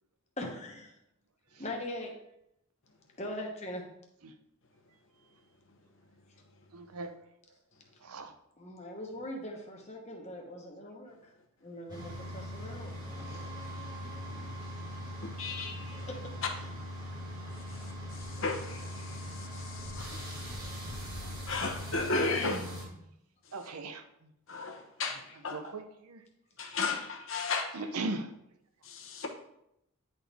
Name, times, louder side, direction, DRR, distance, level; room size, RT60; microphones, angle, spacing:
voice 1, 0.4-0.9 1.6-2.1 3.2-3.8 8.6-11.1 11.6-13.5 15.9-16.7 22.7-23.1, left 1 dB, 30° left, 1 dB, 1.1 m, -41 dB
voice 2, 6.7-7.1 8.0-8.3 12.2-12.3 21.2-21.3 22.3-22.6 23.5-24.0 25.5-26.2 27.7-28.3, right 2 dB, 85° right, 8 dB, 0.7 m, -38 dB
sound 1, 11.9-22.8, equal, 20° right, 1.7 m, -41 dB
voice 3, 15.2-16.0 18.4-20.2 21.5-22.6 24.5-25.6 26.6-27.7 28.9-29.3, left 3 dB, 65° left, 3 dB, 1.0 m, -34 dB
9.8 x 4.1 x 3.5 m, 0.81 s
head